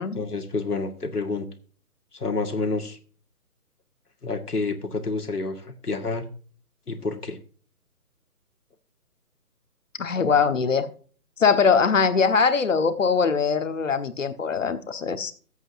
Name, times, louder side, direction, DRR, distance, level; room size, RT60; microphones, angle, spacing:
voice 1, 0.1-1.5 2.1-3.0 4.2-6.3 6.9-7.4, left 3 dB, 75° left, 5 dB, 1.9 m, -29 dB
voice 2, 10.0-10.9 11.4-15.3, left 5 dB, 55° left, 9 dB, 1.3 m, -22 dB
18.0 x 8.0 x 2.6 m, 0.41 s
figure-of-eight pair, 145°, 46 cm